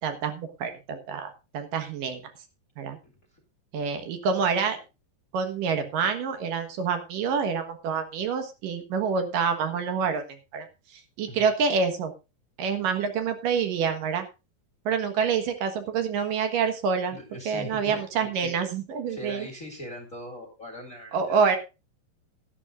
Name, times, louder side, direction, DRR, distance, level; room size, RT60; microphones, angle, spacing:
voice 1, 0.0-2.2 2.8-3.0 3.7-4.8 5.3-10.2 10.5-10.7 10.9-12.1 12.6-14.3 14.9-17.2 17.5-19.5 21.1-21.6, right 6 dB, 70° right, 7 dB, 3.0 m, -27 dB
voice 2, 17.1-18.5 19.1-21.4, equal, 30° left, 2 dB, 1.9 m, -41 dB
17.5 x 11.5 x 2.5 m, 0.28 s
omnidirectional pair, 4.2 m